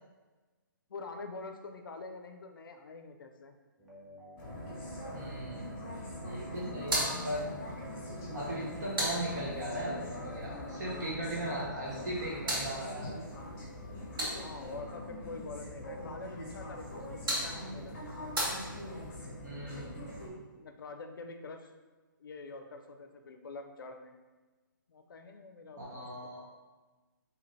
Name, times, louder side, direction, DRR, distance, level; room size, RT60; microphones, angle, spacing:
voice 1, 0.9-3.6 14.3-18.0 20.5-21.7 22.2-24.1 24.9-26.1, left 3 dB, 75° left, 6 dB, 0.4 m, -46 dB
sound 1, 3.8-11.4, equal, ahead, 0.5 m, -55 dB
sound 2, 4.4-20.3, left 1 dB, 35° left, 0.9 m, -42 dB
voice 2, 5.1-5.7 6.2-7.5 8.3-13.2 19.4-20.0 25.8-26.4, right 1 dB, 55° right, -5 dB, 1.0 m, -38 dB
sound 3, 6.8-9.9 11.9-14.8 16.8-19.2, right 1 dB, 85° right, 1.5 m, -38 dB
2.8 x 2.5 x 3.1 m, 1.2 s
hypercardioid pair, 150°, 11 cm